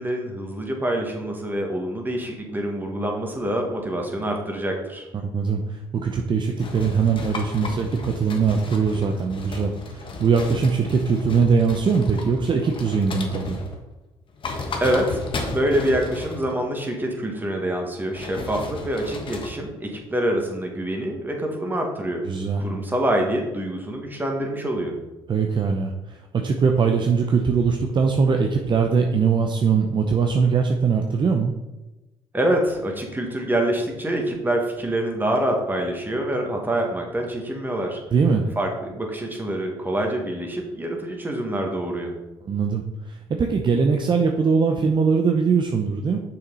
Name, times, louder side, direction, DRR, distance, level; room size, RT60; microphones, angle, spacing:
voice 1, 0.0-5.1 14.8-15.2 15.5-22.2 22.6-24.9 32.3-38.0 38.6-42.1, right 1 dB, 15° right, 1 dB, 2.0 m, -26 dB
voice 2, 5.1-13.6 22.2-22.8 25.3-31.5 38.1-38.5 42.4-46.2, right 5 dB, 45° right, 3 dB, 0.7 m, -21 dB
sound 1, 6.6-13.9 14.3-16.6 18.2-19.5, left 2 dB, 50° left, 1.4 m, -34 dB
6.6 x 5.8 x 4.1 m, 1.0 s
supercardioid pair, 70°, 11 cm